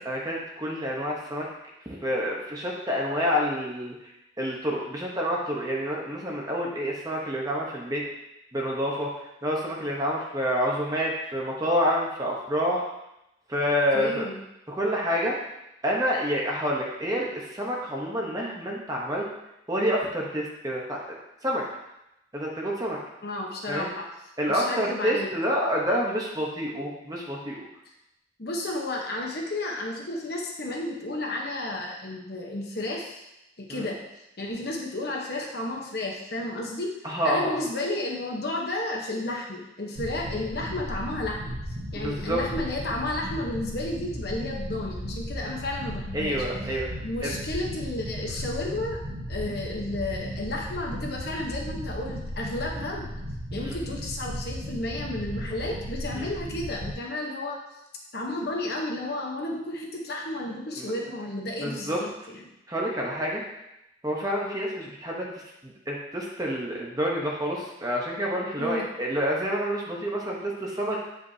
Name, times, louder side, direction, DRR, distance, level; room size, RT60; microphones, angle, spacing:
voice 1, 0.0-1.5 2.0-3.9 4.4-8.0 8.5-9.1 9.4-12.9 13.5-14.2 14.7-15.4 15.8-19.3 19.7-21.0 21.4-21.6 22.3-23.0 23.7-23.9 24.4-27.6 33.7-33.9 37.0-37.7 41.9-42.4 46.1-46.9 47.2-47.4 53.6-53.8 56.1-56.3 60.8-60.9 61.6-62.0 62.7-63.4 64.0-65.3 65.6-71.0, equal, 20° right, -2 dB, 1.0 m, -28 dB
voice 2, 13.9-14.4 23.2-24.1 24.5-25.3 28.4-33.2 33.6-34.0 34.4-37.0 37.2-41.6 41.9-46.5 47.0-49.0 49.3-53.1 53.5-57.6 58.1-62.4 68.6-68.9, left 1 dB, 55° left, -1 dB, 1.0 m, -32 dB
sound 1, 40.0-56.9, equal, 85° right, 1.0 m, -36 dB
8.1 x 5.3 x 2.8 m, 0.87 s
head